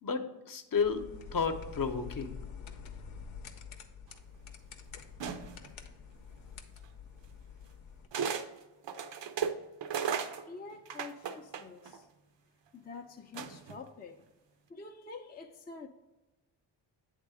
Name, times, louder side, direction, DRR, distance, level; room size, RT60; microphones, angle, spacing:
voice 1, 0.0-1.0 1.3-2.3, left 5 dB, 45° left, 7 dB, 0.8 m, -32 dB
sound 1, 0.8-8.1, left 6 dB, 85° left, 0.8 m, -47 dB
sound 2, 5.2-5.7 6.8-6.9 8.1-8.5 8.8-12.0 13.3-13.8, right 7 dB, 65° right, 0.7 m, -35 dB
voice 2, 10.5-12.1 12.7-14.2 14.7-15.9, left 4 dB, 20° left, 3 dB, 0.5 m, -47 dB
8.2 x 3.7 x 4.8 m, 1.1 s
cardioid pair, 70°, 47 cm